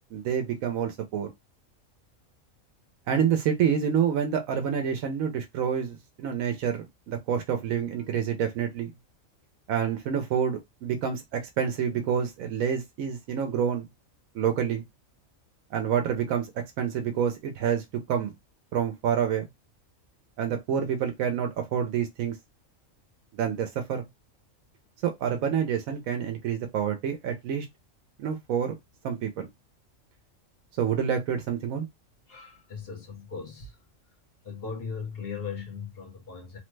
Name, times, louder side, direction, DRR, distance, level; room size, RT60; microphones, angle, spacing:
voice 1, 0.1-1.3 3.1-8.9 9.7-13.9 14.3-14.8 15.7-18.3 18.7-19.5 20.4-22.4 23.3-24.0 25.0-27.7 28.2-28.7 29.0-29.5 30.8-31.9, right 8 dB, 85° right, 1.0 m, -28 dB
voice 2, 32.3-33.8 34.4-36.6, left 5 dB, 50° left, 1.1 m, -38 dB
3.2 x 2.1 x 3.1 m
omnidirectional pair, 1.4 m